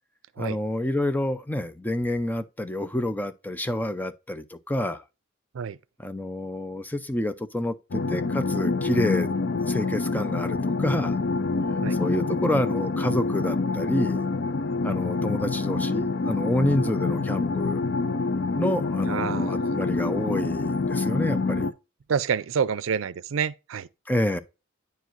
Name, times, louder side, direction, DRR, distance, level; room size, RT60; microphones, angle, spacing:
voice 1, 0.4-5.0 6.0-9.3 9.7-11.1 12.0-14.3 14.8-17.8 18.6-21.7 24.1-24.4, left 1 dB, 10° left, 0.5 m, -28 dB
sound 1, 7.9-21.7, left 3 dB, 60° left, 0.5 m, -26 dB
voice 2, 19.1-19.8 22.1-23.9, right 7 dB, 80° right, 0.4 m, -28 dB
9.3 x 4.6 x 2.5 m
head